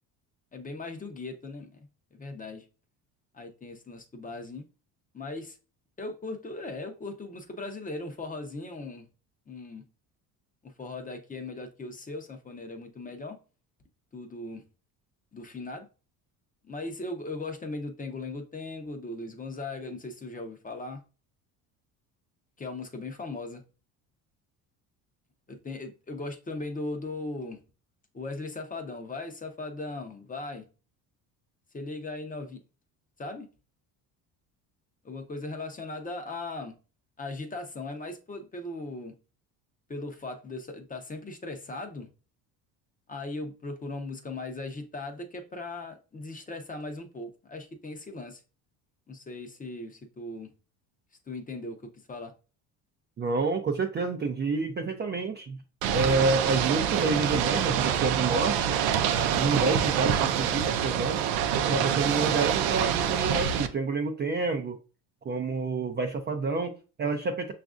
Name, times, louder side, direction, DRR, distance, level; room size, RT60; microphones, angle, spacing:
voice 1, 0.5-2.6 3.3-4.7 5.1-5.6 6.0-9.1 9.5-9.8 10.6-13.4 14.1-14.6 15.3-15.9 16.6-21.0 22.6-23.6 25.5-27.6 28.1-30.7 31.7-32.6 33.2-33.5 35.0-36.8 37.2-39.1 39.9-42.1 43.1-48.4 49.1-50.5 51.3-52.3, left 2 dB, 20° left, 0.6 m, -38 dB
voice 2, 53.2-55.6 55.9-58.7 59.4-61.2 61.6-64.8 65.2-67.5, right 3 dB, 25° right, 0.4 m, -28 dB
Ocean / Boat Water vehicle, 55.8-63.7, right 9 dB, 90° right, 0.5 m, -26 dB
5.9 x 2.5 x 2.4 m
supercardioid pair, 95°, 42 cm